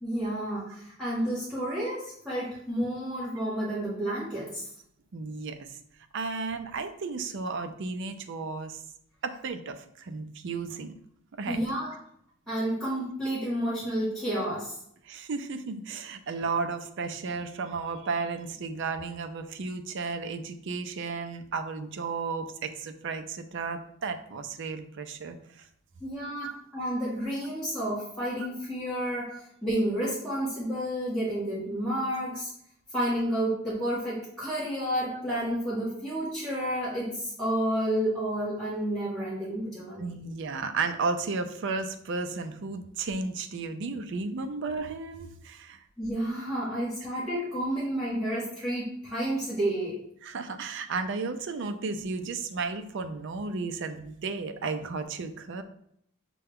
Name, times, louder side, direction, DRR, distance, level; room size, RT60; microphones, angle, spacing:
voice 1, 0.0-4.7 11.5-11.9 12.5-14.8 26.0-32.5 32.9-40.1 46.0-49.9, right 1 dB, 5° left, -10 dB, 1.3 m, -30 dB
voice 2, 5.1-5.8 6.1-8.8 9.2-10.9 11.4-11.6 15.0-25.7 26.4-26.5 29.3-29.4 40.0-45.8 50.2-55.6, right 4 dB, 60° right, 8 dB, 0.4 m, -33 dB
6.6 x 2.2 x 3.5 m, 0.69 s
head